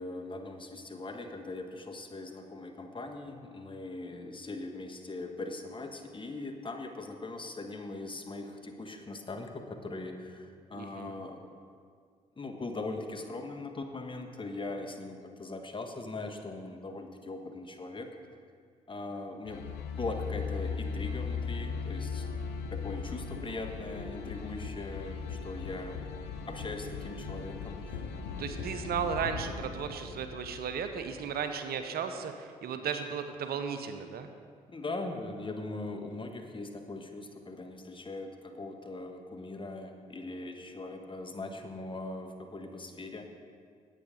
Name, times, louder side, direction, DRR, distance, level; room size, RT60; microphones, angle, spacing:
voice 1, 0.0-11.5 12.4-18.1 18.9-22.3 22.7-26.1 26.5-28.0 34.7-43.3, left 2 dB, 30° left, 4 dB, 1.4 m, -40 dB
voice 2, 10.7-11.1 28.4-34.3, right 7 dB, 60° right, 8 dB, 0.8 m, -35 dB
sound 1, 19.5-31.4, left 5 dB, 70° left, 0.8 m, -38 dB
10.0 x 8.5 x 5.1 m, 2.1 s
hypercardioid pair, 45°, 18 cm